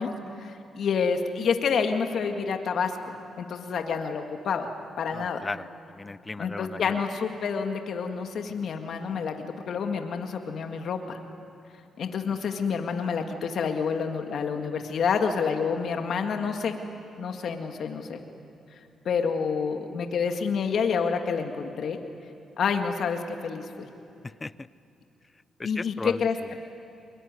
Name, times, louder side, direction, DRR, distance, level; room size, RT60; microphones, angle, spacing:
voice 1, 0.0-2.9 3.4-4.7 5.0-5.4 6.4-9.3 9.7-11.2 12.0-16.7 17.2-18.2 18.7-18.8 19.1-22.0 22.6-23.9 25.6-26.4, left 6 dB, 65° left, 5 dB, 1.9 m, -28 dB
voice 2, 5.1-7.0 24.2-24.7 25.6-26.2, left 3 dB, 25° left, 18 dB, 0.6 m, -37 dB
24.5 x 22.5 x 9.6 m, 2.7 s
cardioid pair, 70°, 0 cm